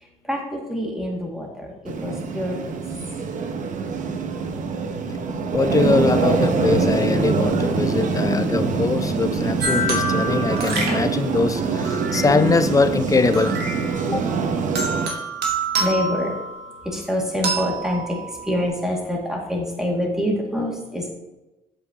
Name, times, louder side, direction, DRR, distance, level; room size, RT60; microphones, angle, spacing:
voice 1, 0.3-1.7 2.0-2.7 15.8-16.3 16.8-18.2 18.4-21.1, equal, 5° right, -2 dB, 2.1 m, -26 dB
sound 1, 1.8-15.1, right 4 dB, 50° right, 0.9 m, -24 dB
voice 2, 5.5-13.6 14.0-14.3, left 4 dB, 20° left, 11 dB, 0.5 m, -22 dB
sound 2, 9.6-12.7 13.3-14.3 14.7-16.9 17.4-18.7, right 2 dB, 70° right, 2.1 m, -27 dB
8.4 x 7.6 x 2.9 m, 1.0 s
cardioid pair, 110°, 17 cm